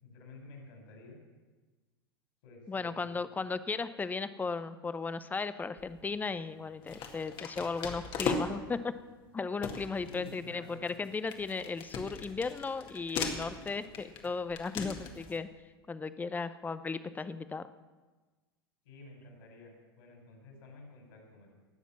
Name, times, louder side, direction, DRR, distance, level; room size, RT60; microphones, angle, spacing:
voice 1, 0.0-1.2 2.4-3.2 10.0-10.8 18.8-21.5, left 3 dB, 60° left, 1 dB, 4.9 m, -51 dB
voice 2, 2.7-8.9 9.3-15.5 15.9-17.7, left 4 dB, 15° left, 14 dB, 0.7 m, -36 dB
sound 1, 5.8-6.1 6.8-8.8 9.2-9.3 9.6-15.4, left 5 dB, 40° left, 1.9 m, -39 dB
19.0 x 7.3 x 7.3 m, 1.3 s
figure-of-eight pair, 90°, 13 cm